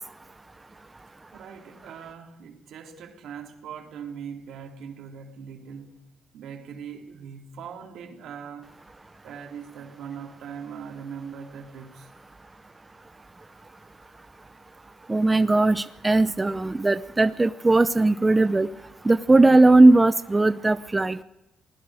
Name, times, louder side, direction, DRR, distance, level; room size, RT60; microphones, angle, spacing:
voice 1, 1.3-6.0 6.3-8.7 9.2-12.1, right 7 dB, 80° right, 3 dB, 3.5 m, -40 dB
voice 2, 15.1-18.7 19.0-21.2, right 2 dB, 20° right, 13 dB, 0.7 m, -18 dB
28.5 x 19.5 x 5.0 m, 0.91 s
cardioid pair, 90°, 0 cm